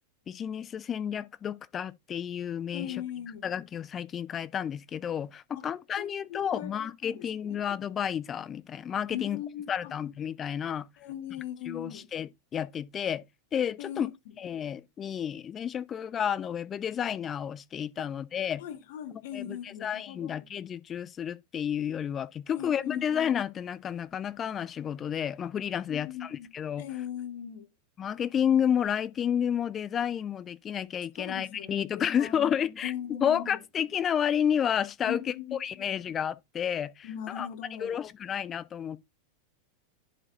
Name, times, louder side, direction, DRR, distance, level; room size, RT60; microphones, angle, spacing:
voice 1, 0.3-2.9 3.4-9.4 9.7-10.9 11.7-13.2 13.5-14.1 14.4-18.6 19.3-19.6 19.8-26.3 26.5-26.8 28.0-32.9 33.2-35.2 35.6-37.1 37.3-37.5 37.8-39.0, left 8 dB, 25° left, 0.4 m, -31 dB
voice 2, 2.7-3.5 5.5-7.6 9.1-10.0 11.0-12.1 13.8-14.3 18.0-18.1 18.6-20.5 22.5-23.1 25.9-26.5 26.8-27.7 31.1-32.5 32.8-33.6 35.0-36.0 37.0-38.0, left 10 dB, 50° left, 1.1 m, -40 dB
11.0 x 4.7 x 2.6 m
figure-of-eight pair, 90°, 0 cm